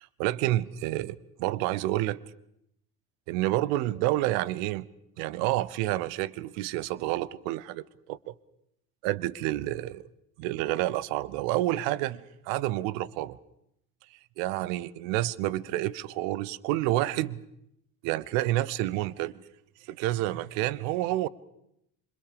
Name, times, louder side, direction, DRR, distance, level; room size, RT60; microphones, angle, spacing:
voice 1, 0.0-2.2 3.3-4.9 5.2-8.3 9.0-10.0 10.4-13.4 14.4-17.4 18.0-19.4 19.9-21.3, right 16 dB, 55° right, 1.1 m, -29 dB
27.0 x 25.0 x 6.8 m
figure-of-eight pair, 60°, 45 cm